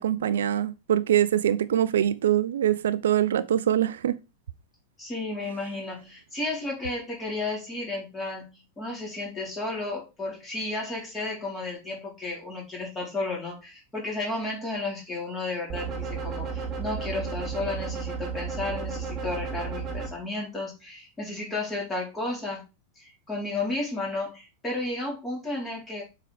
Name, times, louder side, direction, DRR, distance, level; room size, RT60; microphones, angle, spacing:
voice 1, 0.0-4.2, right 10 dB, 60° right, 0.4 m, -23 dB
voice 2, 5.0-22.6 23.0-26.0, left 2 dB, 15° left, 4.0 m, -33 dB
sound 1, 15.7-20.1, right 5 dB, 25° right, 1.9 m, -33 dB
7.5 x 4.8 x 3.4 m
figure-of-eight pair, 90°, 0 cm